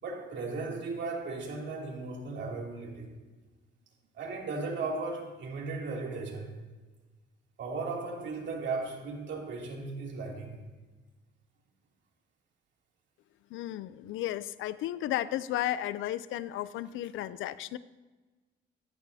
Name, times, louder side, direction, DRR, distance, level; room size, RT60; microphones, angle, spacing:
voice 1, 0.0-3.1 4.1-6.6 7.6-10.6, right 3 dB, 65° right, -1 dB, 2.8 m, -36 dB
voice 2, 13.5-17.8, left 13 dB, 85° left, 17 dB, 0.5 m, -34 dB
14.5 x 13.0 x 2.8 m, 1.2 s
cardioid pair, 90°, 20 cm